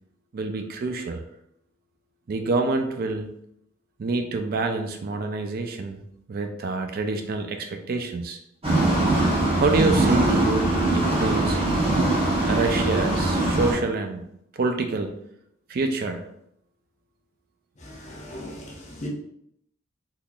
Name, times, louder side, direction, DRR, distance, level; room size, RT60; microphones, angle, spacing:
voice 1, 0.3-1.2 2.3-3.4 4.0-6.0 6.3-8.4 9.5-10.7 10.9-11.8 12.5-14.2 14.5-15.2 15.7-16.2, right 3 dB, 45° right, 0.4 m, -26 dB
sound 1, 8.6-13.7, right 2 dB, 30° right, 1.0 m, -22 dB
voice 2, 17.8-19.1, left 1 dB, 35° left, 0.8 m, -38 dB
3.7 x 2.9 x 2.3 m
head